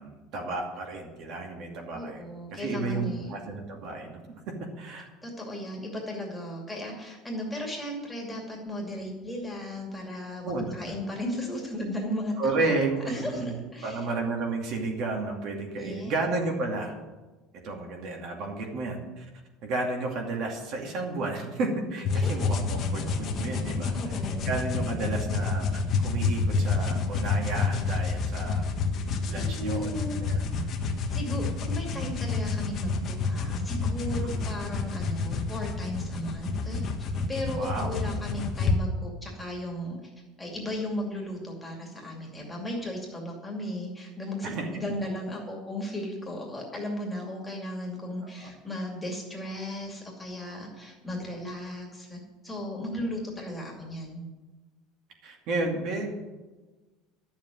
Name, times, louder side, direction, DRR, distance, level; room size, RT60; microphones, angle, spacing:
voice 1, 0.0-2.2 2.5-4.2 4.5-5.1 10.4-10.9 12.4-13.5 13.8-16.9 17.6-19.3 19.6-24.2 24.5-25.7 26.0-28.6 29.3-29.9 30.2-30.4 30.7-30.8 34.2-34.4 37.6-37.9 44.4-44.7 48.2-48.5 55.2-56.1, right 3 dB, 45° right, 1 dB, 2.4 m, -32 dB
voice 2, 1.9-3.3 5.2-14.1 15.8-16.2 22.1-22.5 23.9-24.5 29.4-30.2 30.8-40.1 40.4-54.2, left 1 dB, 5° left, -1 dB, 2.4 m, -36 dB
sound 1, 22.0-38.8, left 4 dB, 30° left, 1.3 m, -29 dB
12.0 x 7.3 x 9.2 m, 1.2 s
cardioid pair, 170°, 0 cm